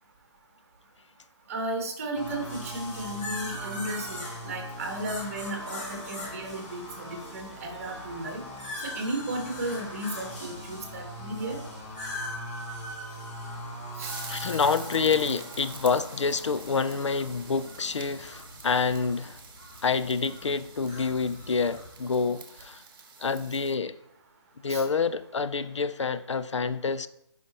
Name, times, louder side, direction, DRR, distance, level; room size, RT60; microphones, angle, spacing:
voice 1, 1.5-8.4 8.8-11.6 14.0-14.2 24.7-24.9, right 1 dB, 30° right, 1.4 m, -34 dB
sound 1, 2.1-21.9, left 1 dB, 15° left, 1.2 m, -40 dB
sound 2, 14.0-23.7, right 5 dB, 45° right, 1.1 m, -46 dB
voice 2, 14.3-19.4 19.8-22.8 23.2-24.0 24.6-27.1, left 5 dB, 85° left, 0.5 m, -27 dB
9.2 x 5.1 x 3.0 m
hypercardioid pair, 165°, 15 cm